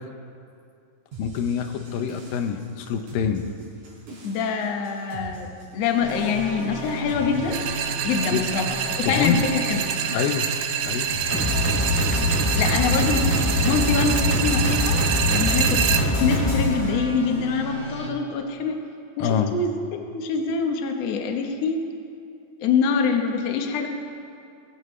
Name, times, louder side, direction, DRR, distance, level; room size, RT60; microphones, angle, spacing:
sound 1, 1.1-17.0, right 1 dB, 60° right, 5.2 m, -41 dB
voice 1, 1.2-3.4 8.3-8.4 9.0-9.5 10.1-10.5 10.8-11.2 19.2-19.5, left 7 dB, 85° left, 7 dB, 2.7 m, -25 dB
voice 2, 4.2-5.5 5.7-7.6 8.0-8.7 9.0-9.8 12.2-18.8 19.2-19.7 20.1-21.8 22.6-23.9, left 5 dB, 60° left, 3 dB, 2.0 m, -25 dB
sound 2, 6.0-18.1, left 1 dB, 15° left, 3.7 m, -26 dB
sound 3, 7.5-16.0, right 9 dB, 80° right, 2.4 m, -27 dB
21.5 x 16.5 x 3.3 m, 2.5 s
omnidirectional pair, 4.0 m